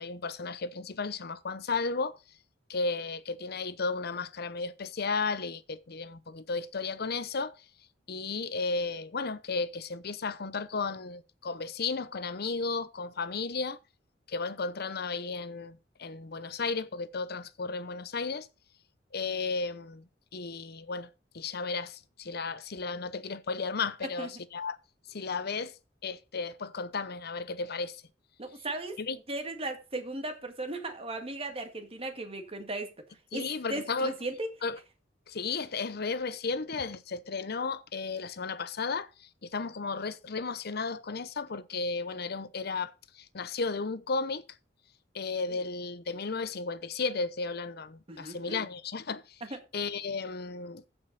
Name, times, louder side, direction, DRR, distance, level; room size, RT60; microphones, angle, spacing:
voice 1, 0.0-2.2 2.7-7.5 8.1-13.8 14.3-18.5 19.1-21.1 21.3-24.8 25.1-25.7 26.0-28.0 29.0-29.2 33.3-34.1 34.6-34.8 35.3-44.5 45.1-49.4 49.7-50.8, left 4 dB, 60° left, 0.8 m, -34 dB
voice 2, 28.4-33.1 33.3-34.5 45.5-45.6 48.1-48.6 49.4-49.6, right 2 dB, 30° right, 1.9 m, -37 dB
15.0 x 5.4 x 4.1 m
head